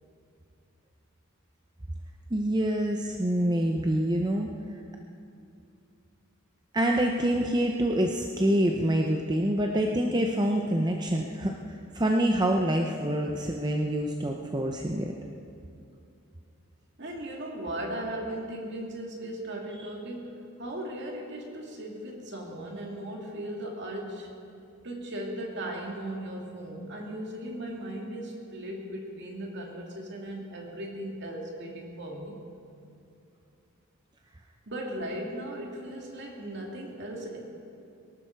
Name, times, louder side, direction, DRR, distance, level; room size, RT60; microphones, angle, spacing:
voice 1, 2.3-4.5 6.7-15.1, right 1 dB, 20° right, 1 dB, 0.7 m, -26 dB
voice 2, 17.0-24.3 24.8-32.4 34.7-37.4, right 1 dB, 50° right, 0 dB, 2.6 m, -37 dB
22.5 x 12.0 x 4.6 m, 2.6 s
head